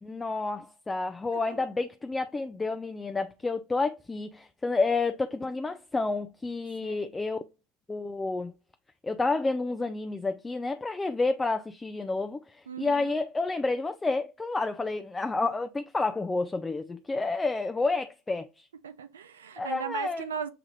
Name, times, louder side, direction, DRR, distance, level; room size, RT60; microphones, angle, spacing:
voice 1, 0.0-7.4 7.9-8.5 9.0-18.7 19.6-20.3, left 3 dB, 15° left, 0.4 m, -30 dB
voice 2, 1.3-1.6 6.8-7.0 12.7-13.2 18.8-20.5, right 7 dB, 85° right, 0.4 m, -38 dB
6.6 x 2.4 x 3.1 m
hypercardioid pair, 80°, 0 cm